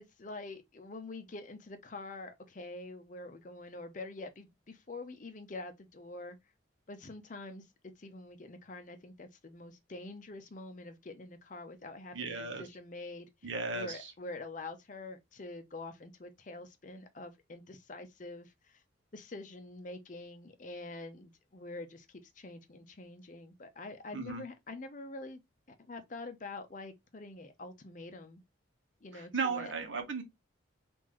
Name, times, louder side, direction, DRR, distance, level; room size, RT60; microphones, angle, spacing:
voice 1, 0.0-6.4 6.9-7.7 8.0-18.8 19.1-25.4 25.7-28.4 29.0-29.7, left 2 dB, 40° left, 0.6 m, -46 dB
voice 2, 12.1-12.6 13.4-14.1 24.1-24.4 29.1-30.2, right 4 dB, 70° right, 0.9 m, -36 dB
3.7 x 2.5 x 3.0 m
head